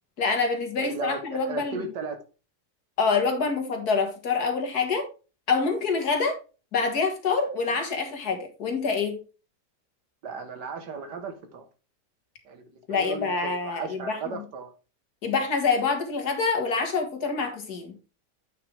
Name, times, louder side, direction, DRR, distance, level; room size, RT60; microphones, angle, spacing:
voice 1, 0.2-1.9 3.0-5.1 5.5-6.4 6.7-9.2 12.9-14.4 15.2-18.0, left 4 dB, 70° left, 2.2 m, -26 dB
voice 2, 0.8-2.2 10.2-11.7 12.5-12.6 12.9-14.7, right 4 dB, 85° right, 2.0 m, -36 dB
8.7 x 6.0 x 3.5 m
omnidirectional pair, 1.8 m